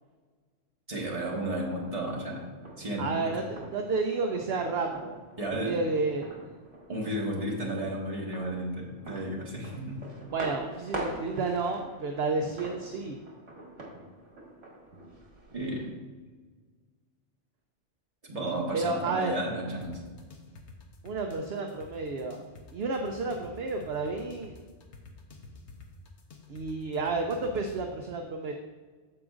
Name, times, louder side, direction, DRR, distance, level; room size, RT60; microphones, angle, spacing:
voice 1, 0.9-2.5 2.8-3.5 5.4-5.8 6.9-10.0 15.5-15.9 18.3-20.0, right 1 dB, 30° right, -3 dB, 1.7 m, -33 dB
sound 1, 1.0-15.9, right 2 dB, 85° right, 2.0 m, -45 dB
voice 2, 3.0-5.2 5.6-6.3 10.3-13.2 18.7-19.3 21.0-22.4 22.7-24.5 26.5-28.5, right 3 dB, 60° right, 3 dB, 0.9 m, -31 dB
sound 2, 19.8-27.8, left 3 dB, 70° left, 1.2 m, -49 dB
14.5 x 4.9 x 2.5 m, 1.4 s
omnidirectional pair, 1.2 m